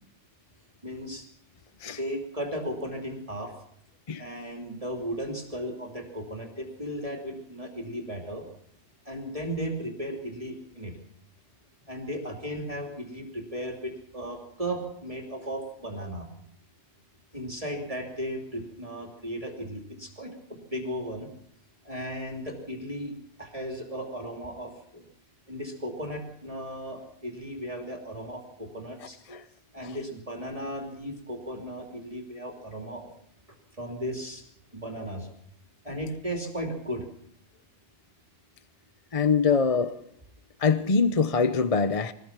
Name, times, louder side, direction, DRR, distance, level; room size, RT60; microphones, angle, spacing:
voice 1, 0.8-1.3 2.0-3.5 4.2-8.4 9.0-10.9 11.9-16.3 17.3-21.3 21.8-23.1 23.4-25.0 25.5-29.2 29.7-33.1 33.7-34.4 34.7-35.3 35.8-37.0, equal, 25° right, 3.1 m, -35 dB
voice 2, 39.1-40.0 40.6-42.1, left 5 dB, 30° left, 0.8 m, -23 dB
23.5 x 19.0 x 6.0 m
omnidirectional pair, 1.4 m